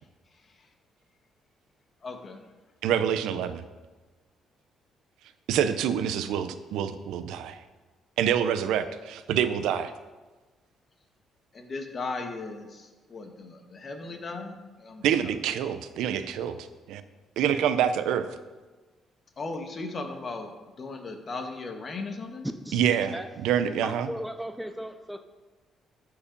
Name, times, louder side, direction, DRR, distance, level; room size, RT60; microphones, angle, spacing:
voice 1, 2.0-2.5 11.5-15.4 19.4-22.5, left 3 dB, 40° left, 4 dB, 1.4 m, -37 dB
voice 2, 2.8-3.6 5.5-7.6 8.2-9.9 15.0-17.0 17.4-18.3 22.7-23.1 23.4-24.1, right 9 dB, 85° right, 11 dB, 0.6 m, -26 dB
voice 3, 23.8-25.2, equal, 5° right, 7 dB, 0.5 m, -36 dB
14.0 x 4.9 x 5.3 m, 1.3 s
cardioid pair, 105°, 0 cm